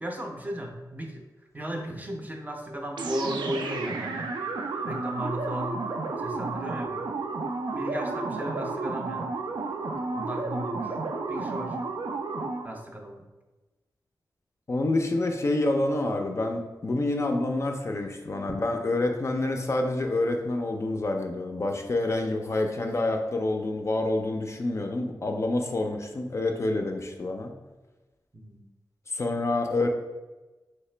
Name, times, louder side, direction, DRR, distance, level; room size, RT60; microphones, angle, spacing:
voice 1, 0.0-1.2 1.5-4.3 4.8-5.8 6.2-7.1 7.7-9.3 10.1-10.9 11.3-11.8 12.6-13.3 18.5-18.6 28.3-28.6, equal, 20° right, 2 dB, 0.5 m, -35 dB
sound 1, 3.0-12.8, right 3 dB, 85° right, 0.4 m, -32 dB
voice 2, 14.7-27.5 29.1-29.9, left 2 dB, 40° left, 3 dB, 0.4 m, -27 dB
3.2 x 2.8 x 3.2 m, 1.1 s
wide cardioid pair, 105°, 8 cm